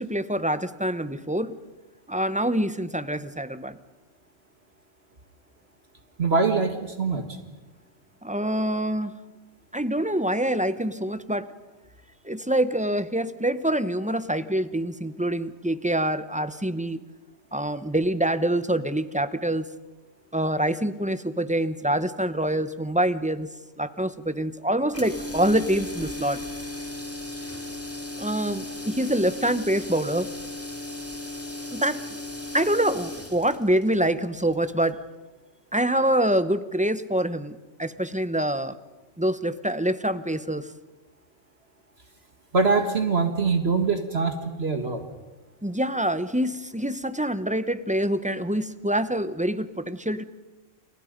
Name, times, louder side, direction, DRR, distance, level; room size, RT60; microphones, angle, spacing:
voice 1, 0.0-1.5 2.1-3.8 8.2-9.1 9.7-11.5 12.2-17.0 17.5-19.7 20.3-23.5 23.8-26.4 28.2-30.3 31.7-32.0 32.5-35.0 35.7-38.8 39.2-40.7 45.6-50.2, right 1 dB, 5° right, 12 dB, 0.9 m, -25 dB
voice 2, 6.2-7.3 42.5-45.0, right 4 dB, 55° right, 6 dB, 2.0 m, -23 dB
sound 1, 24.9-35.0, left 2 dB, 10° left, 2.5 m, -36 dB
30.0 x 29.0 x 5.3 m, 1.1 s
omnidirectional pair, 1.3 m